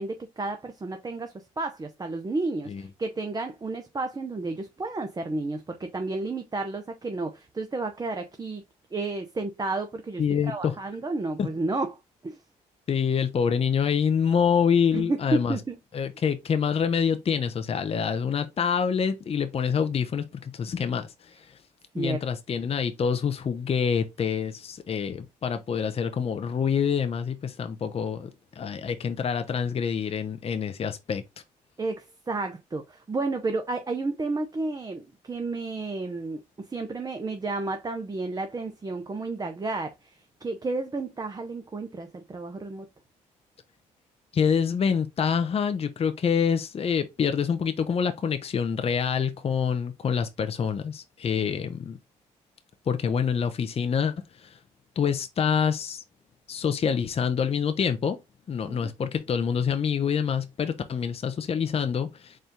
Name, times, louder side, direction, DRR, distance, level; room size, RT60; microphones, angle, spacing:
voice 1, 0.0-8.6 8.9-12.0 12.2-12.4 14.9-15.8 21.9-22.2 31.8-42.9 51.3-51.5 58.7-58.9, right 3 dB, 25° right, 0.7 m, -32 dB
voice 2, 10.2-10.7 11.4-11.5 12.9-15.6 15.9-21.1 22.0-28.3 28.6-31.2 44.3-52.0 52.9-54.1 54.4-54.6 55.0-56.0 56.5-58.2 58.5-62.4, left 7 dB, 40° left, 0.6 m, -26 dB
4.3 x 2.5 x 3.5 m
hypercardioid pair, 55°, 16 cm